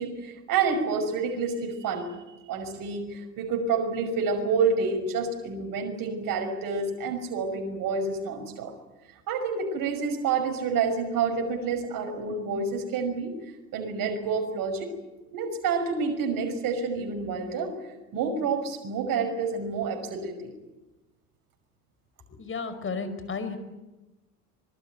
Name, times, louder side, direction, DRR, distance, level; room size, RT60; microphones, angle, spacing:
voice 1, 0.0-2.1 2.5-8.7 9.3-13.4 13.7-14.9 15.3-20.5, right 5 dB, 45° right, 4 dB, 5.8 m, -28 dB
voice 2, 22.3-23.6, left 4 dB, 25° left, 10 dB, 5.2 m, -33 dB
25.5 x 22.5 x 9.4 m, 1.1 s
figure-of-eight pair, 65°, 46 cm